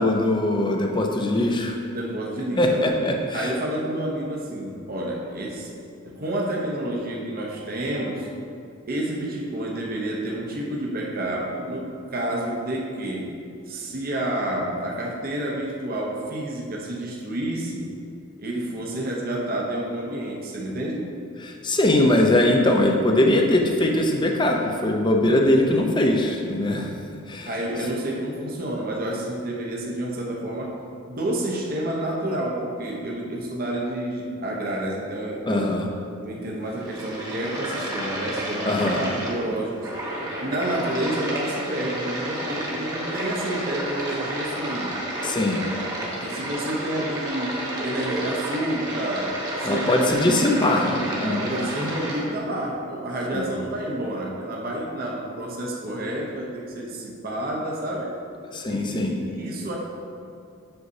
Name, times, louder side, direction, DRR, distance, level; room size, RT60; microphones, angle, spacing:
voice 1, 0.0-1.8 2.6-3.5 21.4-26.9 27.3-27.5 35.5-35.9 38.7-39.0 45.2-45.6 49.6-51.5 53.3-53.5 58.5-59.1, left 1 dB, 20° left, 2 dB, 0.6 m, -21 dB
voice 2, 1.9-2.9 3.3-5.7 6.1-8.3 8.9-17.9 18.4-21.1 27.4-30.8 31.1-35.7 36.2-39.9 40.4-44.9 46.1-58.2 58.7-59.8, right 1 dB, 45° right, -2 dB, 0.8 m, -29 dB
sound 1, 36.6-52.2, right 1 dB, 20° right, 1.2 m, -31 dB
7.8 x 6.7 x 2.7 m, 2.5 s
head